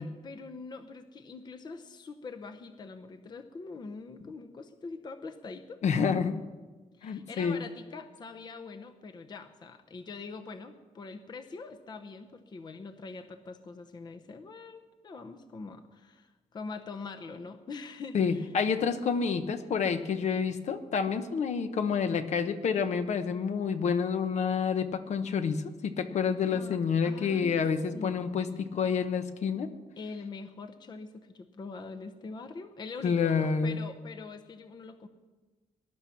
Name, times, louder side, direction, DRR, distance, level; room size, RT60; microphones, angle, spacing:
voice 1, 0.0-5.8 7.0-18.5 26.4-26.8 27.0-27.6 27.9-28.2 30.0-35.1, left 4 dB, 35° left, 7 dB, 0.8 m, -43 dB
voice 2, 5.8-6.5 7.0-7.6 18.1-29.7 33.0-33.8, left 6 dB, 65° left, 9 dB, 1.0 m, -28 dB
19.5 x 11.5 x 5.8 m, 1.3 s
wide cardioid pair, 170°, 13 cm